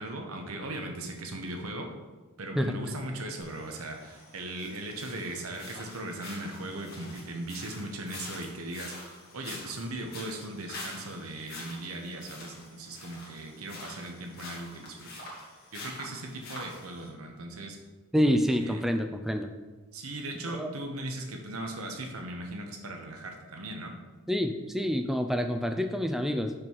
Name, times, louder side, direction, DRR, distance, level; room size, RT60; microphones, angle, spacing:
voice 1, 0.0-1.9 2.4-15.3 15.7-17.8 18.5-18.8 19.9-23.9, right 1 dB, 80° right, 3 dB, 1.0 m, -38 dB
sound 1, 3.4-17.1, left 2 dB, 45° left, 1.7 m, -46 dB
voice 2, 18.1-19.5 20.5-20.7 24.3-26.5, equal, ahead, 6 dB, 0.3 m, -27 dB
5.5 x 5.0 x 4.7 m, 1.3 s
head